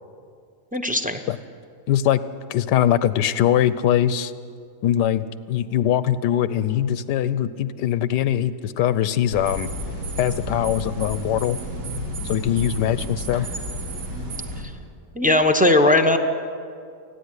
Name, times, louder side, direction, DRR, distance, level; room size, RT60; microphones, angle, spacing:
voice 1, 0.7-1.2 15.1-16.2, left 2 dB, 10° right, 6 dB, 0.5 m, -18 dB
voice 2, 1.9-2.2 2.5-4.3 4.8-9.7 10.2-11.6 12.2-13.5, left 11 dB, 85° left, 15 dB, 1.3 m, -22 dB
sound 1, 9.3-14.6, equal, 90° right, 3.1 m, -31 dB
28.5 x 10.0 x 9.7 m, 2.3 s
omnidirectional pair, 1.8 m